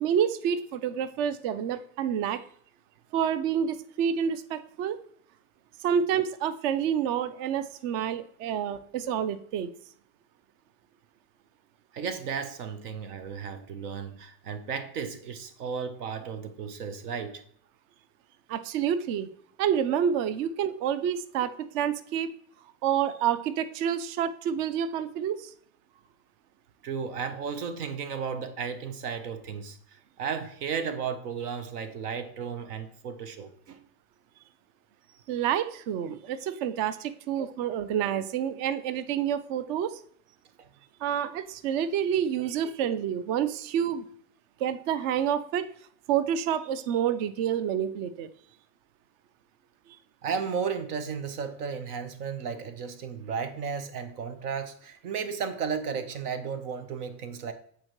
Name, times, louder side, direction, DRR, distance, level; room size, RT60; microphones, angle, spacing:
voice 1, 0.0-2.4 3.1-5.0 5.8-9.7 18.5-19.3 19.6-22.3 22.8-25.5 35.3-40.0 41.0-44.0 44.6-45.7 46.1-48.3, right 9 dB, 45° right, 0.6 m, -28 dB
voice 2, 11.9-17.4 26.8-33.8 40.6-40.7 50.2-57.5, right 6 dB, 75° right, 1.0 m, -34 dB
8.7 x 3.9 x 3.1 m
hypercardioid pair, 110°, 46 cm